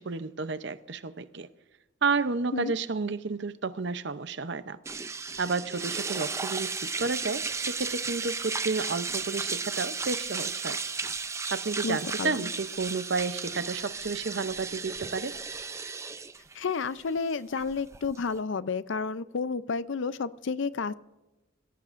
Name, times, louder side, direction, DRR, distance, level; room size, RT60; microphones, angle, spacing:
voice 1, 0.0-1.5 2.0-4.8 5.4-6.7 7.0-10.8 11.5-15.3, right 4 dB, 55° right, 13 dB, 0.6 m, -31 dB
sound 1, 4.9-18.4, right 4 dB, 15° right, 0.4 m, -34 dB
voice 2, 11.8-12.5 16.5-20.9, left 5 dB, 65° left, 16 dB, 0.5 m, -31 dB
24.5 x 16.0 x 2.5 m, 1.1 s
head